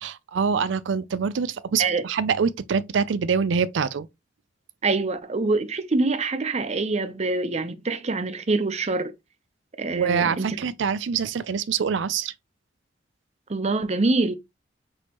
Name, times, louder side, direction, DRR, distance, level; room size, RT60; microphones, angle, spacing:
voice 1, 0.0-4.1 9.9-12.3, right 6 dB, 80° right, 0.4 m, -25 dB
voice 2, 4.8-9.1 9.8-10.5 13.5-14.4, right 3 dB, 35° right, 0.6 m, -25 dB
6.3 x 2.9 x 2.9 m
head